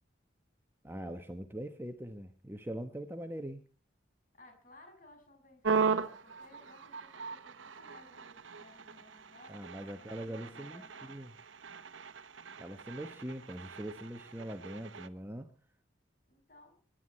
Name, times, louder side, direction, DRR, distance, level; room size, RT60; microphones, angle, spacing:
voice 1, 0.8-3.6 9.5-10.8 11.1-11.3 12.6-15.5, right 1 dB, 10° right, 7 dB, 1.1 m, -42 dB
voice 2, 4.3-11.2 16.3-16.7, left 1 dB, 45° left, 4 dB, 6.6 m, -59 dB
sound 1, 5.6-15.1, right 5 dB, 85° right, 1.0 m, -38 dB
25.0 x 11.5 x 4.3 m, 0.37 s
head